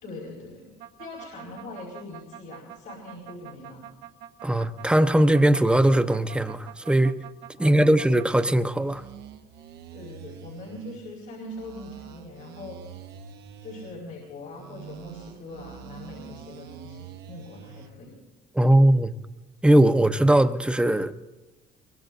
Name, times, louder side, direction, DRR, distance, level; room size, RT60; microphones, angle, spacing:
voice 1, 0.0-0.7 1.0-3.8 7.6-8.1 9.9-12.8 13.6-18.1, left 2 dB, 85° left, 4.9 m, -42 dB
sound 1, 0.8-8.5 8.8-11.0 11.5-14.0 14.5-17.9, right 9 dB, 80° right, 0.9 m, -45 dB
voice 2, 4.4-7.2 7.6-9.0 18.5-19.1 19.6-21.2, right 1 dB, 5° right, 0.7 m, -20 dB
23.5 x 23.0 x 2.6 m
cardioid pair, 110°, 17 cm